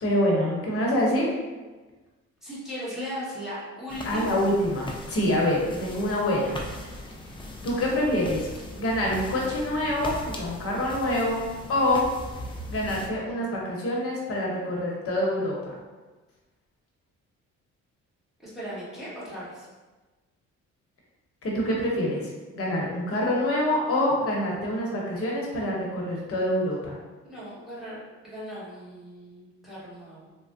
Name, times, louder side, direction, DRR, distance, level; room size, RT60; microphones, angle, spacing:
voice 1, 0.0-1.3 4.0-6.5 7.6-8.5 8.8-11.4 11.7-12.1 12.7-15.8 21.4-27.0, left 1 dB, 50° left, -3 dB, 0.9 m, -26 dB
voice 2, 2.4-4.3 18.4-19.7 27.3-28.0 28.2-30.3, equal, ahead, -10 dB, 1.3 m, -37 dB
sound 1, 3.9-13.1, left 1 dB, 15° left, 0.3 m, -39 dB
3.2 x 2.1 x 2.5 m, 1.2 s
cardioid pair, 90°, 30 cm